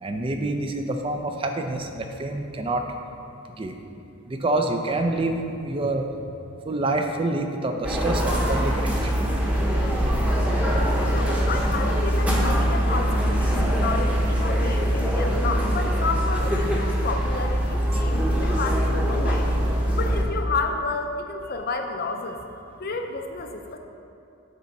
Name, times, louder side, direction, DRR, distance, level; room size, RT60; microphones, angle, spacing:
voice 1, 0.0-2.8 3.6-3.7 4.3-6.1 6.7-9.1 17.9-18.0, right 2 dB, 25° right, 4 dB, 0.4 m, -27 dB
sound 1, 7.8-20.2, equal, 5° right, 0.8 m, -23 dB
voice 2, 11.1-19.5 20.0-22.4 22.8-23.8, left 3 dB, 50° left, 5 dB, 0.5 m, -31 dB
6.7 x 4.1 x 5.8 m, 2.6 s
head